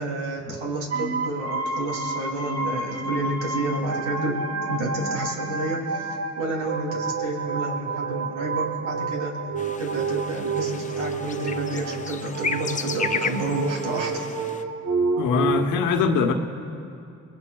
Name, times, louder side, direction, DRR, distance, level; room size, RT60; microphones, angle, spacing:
voice 1, 0.0-4.4 4.7-9.4 9.8-14.2, right 2 dB, 85° right, -1 dB, 3.2 m, -30 dB
sound 1, 0.9-15.7, right 4 dB, 55° right, 1.1 m, -29 dB
sound 2, 9.6-14.6, left 5 dB, 25° left, 0.5 m, -33 dB
voice 2, 15.2-16.3, left 5 dB, 90° left, 4 dB, 1.2 m, -22 dB
25.5 x 20.5 x 2.4 m, 2.6 s
cardioid pair, 90°, 30 cm